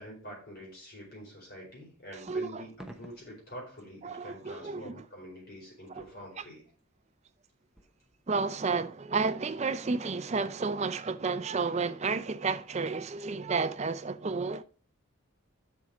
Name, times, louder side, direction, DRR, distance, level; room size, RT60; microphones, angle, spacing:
voice 1, 0.0-6.7, equal, 45° left, 4.6 m, -46 dB
sound 1, 2.2-4.8 5.3-5.5 5.9-6.9 7.8-8.7, right 1 dB, ahead, 0.8 m, -54 dB
voice 2, 2.3-2.6 4.0-5.0 5.9-6.1 6.4-6.5 8.3-14.6, right 4 dB, 30° right, 0.5 m, -31 dB
7.5 x 6.3 x 5.0 m
head